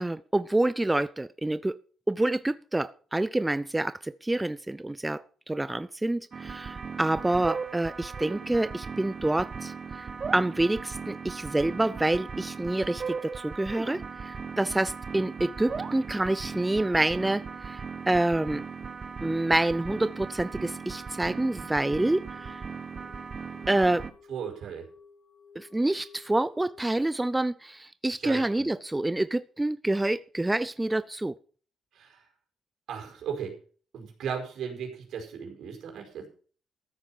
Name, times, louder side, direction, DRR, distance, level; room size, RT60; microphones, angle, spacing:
voice 1, 0.0-1.8 2.1-18.6 19.2-22.6 23.7-24.1 25.6-31.3, right 2 dB, 10° right, 0.5 m, -27 dB
sound 1, 6.3-24.1, right 5 dB, 40° right, 1.3 m, -38 dB
sound 2, 18.4-26.8, left 5 dB, 90° left, 4.7 m, -58 dB
voice 2, 24.3-24.9 28.2-28.7 31.9-32.3 32.9-33.6 33.9-36.3, right 7 dB, 75° right, 4.9 m, -36 dB
14.5 x 8.3 x 5.8 m
cardioid pair, 90°, 0 cm